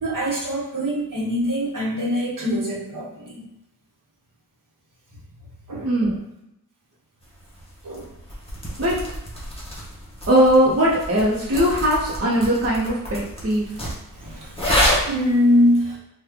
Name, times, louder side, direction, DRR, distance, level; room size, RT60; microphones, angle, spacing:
voice 1, 0.0-3.5 5.7-5.9 7.8-8.1 14.1-16.0, left 1 dB, 60° right, -5 dB, 1.0 m, -23 dB
voice 2, 5.8-6.2 8.8-9.0 10.3-13.7, equal, 40° right, -7 dB, 0.8 m, -19 dB
sound 1, 7.2-15.3, equal, 15° left, 1.0 m, -28 dB
3.2 x 2.3 x 3.6 m, 0.85 s
wide cardioid pair, 95°, 36 cm